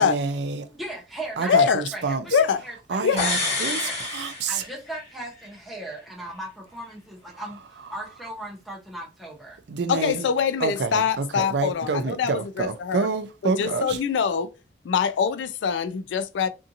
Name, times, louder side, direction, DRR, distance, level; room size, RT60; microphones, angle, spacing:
voice 1, 0.0-0.7 1.4-2.4 2.9-4.6 9.7-10.3 10.6-14.0, right 4 dB, 65° right, 0.4 m, -28 dB
voice 2, 0.6-4.0 4.5-7.6 7.9-9.6, right 1 dB, ahead, 0.9 m, -38 dB
voice 3, 1.5-1.8 2.3-2.6 3.0-3.3 9.9-13.1 13.6-14.5 14.8-16.5, left 6 dB, 80° left, 0.4 m, -23 dB
sound 1, 3.2-5.1 5.4-5.5, left 3 dB, 35° left, 1.1 m, -28 dB
2.6 x 2.5 x 2.6 m
head